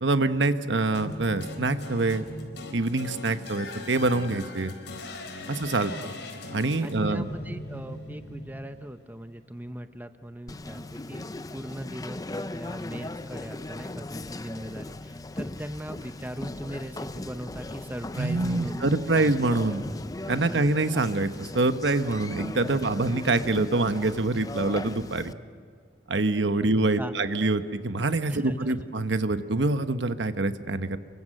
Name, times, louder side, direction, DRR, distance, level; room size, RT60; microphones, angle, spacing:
voice 1, 0.0-2.2 2.7-4.7 5.5-5.9 6.5-7.3 18.2-19.8 20.3-25.3 26.1-31.0, right 2 dB, 85° right, 10 dB, 1.1 m, -25 dB
sound 1, 0.9-9.2, left 1 dB, 85° left, 3.9 m, -39 dB
voice 2, 5.8-6.2 6.8-11.2 11.5-19.3 20.5-20.6 20.9-21.0 22.7-22.8 27.0-27.1 28.3-28.8, right 1 dB, 10° right, 9 dB, 0.8 m, -39 dB
Conversation, 10.5-25.3, left 2 dB, 20° left, 0.6 m, -38 dB
30.0 x 23.5 x 6.6 m, 2.1 s
head